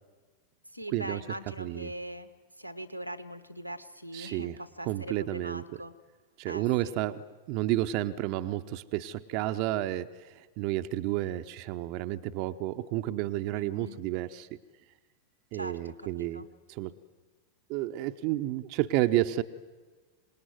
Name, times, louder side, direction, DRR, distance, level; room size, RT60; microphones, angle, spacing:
voice 1, 0.7-2.3 2.6-5.9 6.5-6.9 13.6-14.0 15.5-16.5, right 1 dB, 90° right, 13 dB, 1.3 m, -41 dB
voice 2, 1.6-1.9 4.1-4.6 4.8-5.6 6.4-14.5 15.5-17.0 17.7-19.4, right 15 dB, 45° right, 9 dB, 0.8 m, -31 dB
26.5 x 19.5 x 9.6 m, 1.3 s
figure-of-eight pair, 90°, 0 cm